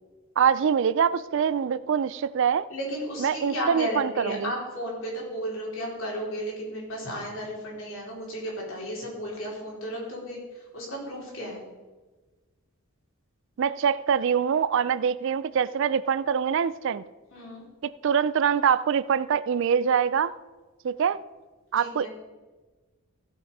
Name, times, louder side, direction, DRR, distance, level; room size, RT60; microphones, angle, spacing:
voice 1, 0.4-2.7 3.2-4.5 13.6-17.0 17.8-20.3 20.8-21.2 21.7-22.1, right 7 dB, 55° right, 0.3 m, -24 dB
voice 2, 2.7-11.6 17.3-17.6 21.8-22.1, equal, 60° left, 4.0 m, -34 dB
15.5 x 6.1 x 5.4 m
head